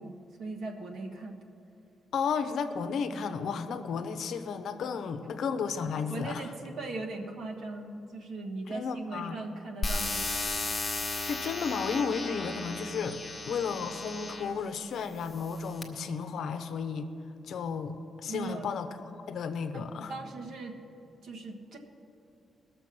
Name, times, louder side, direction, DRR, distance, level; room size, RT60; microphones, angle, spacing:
voice 1, 0.0-1.4 6.1-10.5 18.3-18.7 19.7-20.8 21.2-21.8, right 3 dB, 70° right, 2 dB, 1.4 m, -39 dB
voice 2, 2.1-6.4 8.7-9.4 11.2-17.1 17.5-18.9 19.3-20.1, left 6 dB, 70° left, 9 dB, 0.7 m, -33 dB
sound 1, 9.8-14.6 15.3-15.8, left 3 dB, 20° left, 1.2 m, -35 dB
19.5 x 6.8 x 6.0 m, 2.8 s
wide cardioid pair, 170°, 0 cm